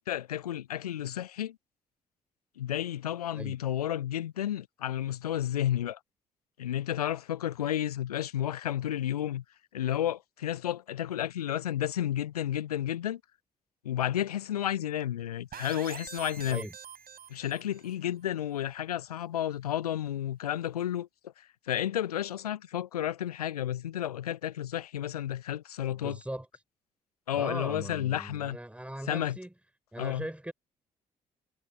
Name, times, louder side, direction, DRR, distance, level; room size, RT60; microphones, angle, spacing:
voice 1, 0.1-1.6 2.6-6.0 6.6-9.4 9.7-13.2 13.8-16.6 17.3-26.2 27.3-28.6 29.1-29.4 30.0-30.3, left 11 dB, 85° left, 0.6 m, -32 dB
sound 1, 15.5-17.9, right 9 dB, 55° right, 6.6 m, -45 dB
voice 2, 25.9-26.5 27.3-29.5 29.9-30.5, right 1 dB, 5° right, 7.0 m, -39 dB
figure-of-eight pair, 45°, 19 cm